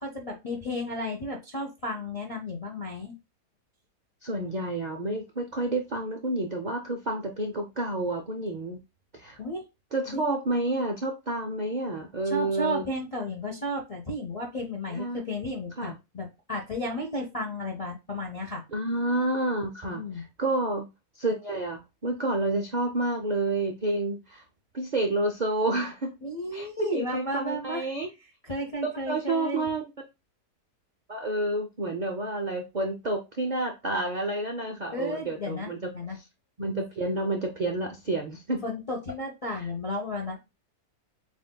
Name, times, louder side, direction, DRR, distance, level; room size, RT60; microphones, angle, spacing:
voice 1, 0.0-3.1 9.4-9.6 10.1-10.2 12.2-18.6 19.9-20.2 26.2-27.8 28.4-29.7 34.9-36.2 38.6-40.6, left 1 dB, 40° left, 0.5 m, -33 dB
voice 2, 4.2-8.8 9.1-9.4 9.9-12.8 14.9-15.2 15.8-16.0 18.7-20.9 21.1-24.4 24.7-26.2 26.5-28.1 29.1-29.8 31.1-36.2 36.6-38.6 39.5-39.6, right 2 dB, 65° right, 0.4 m, -29 dB
7.3 x 2.5 x 2.2 m
omnidirectional pair, 1.6 m